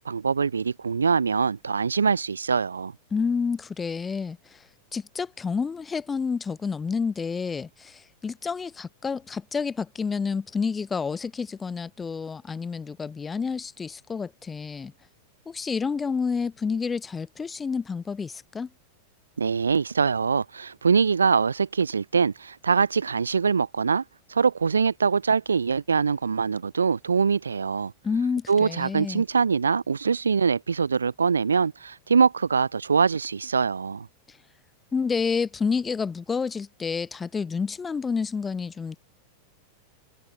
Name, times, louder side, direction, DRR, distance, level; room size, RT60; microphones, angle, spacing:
voice 1, 0.0-2.9 19.4-24.0 24.3-27.9 28.5-34.1, right 5 dB, 75° right, 0.6 m, -23 dB
voice 2, 3.1-4.6 4.9-14.9 15.5-18.7 28.0-29.2 34.3-34.4 34.9-39.0, left 5 dB, 15° left, 0.8 m, -29 dB
figure-of-eight pair, 90°, 0 cm